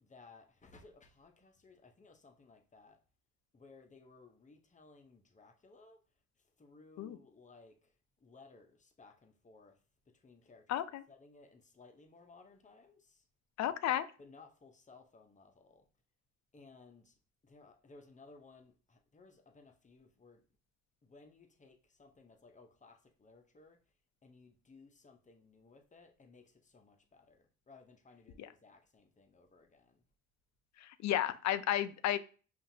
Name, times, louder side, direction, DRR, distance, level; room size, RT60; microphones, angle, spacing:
voice 1, 0.0-3.0 3.5-6.0 6.6-7.7 8.2-9.7 10.2-10.6 11.1-13.0 14.2-15.8 16.5-17.1 17.5-20.4 21.0-23.8 24.2-26.4 26.7-27.4 27.7-29.9, left 3 dB, 25° left, 0.7 m, -59 dB
voice 2, 10.7-11.0 13.6-14.1 28.4-28.5 30.8-32.2, left 12 dB, 65° left, 0.4 m, -33 dB
5.5 x 2.5 x 2.7 m
cardioid pair, 90°, 30 cm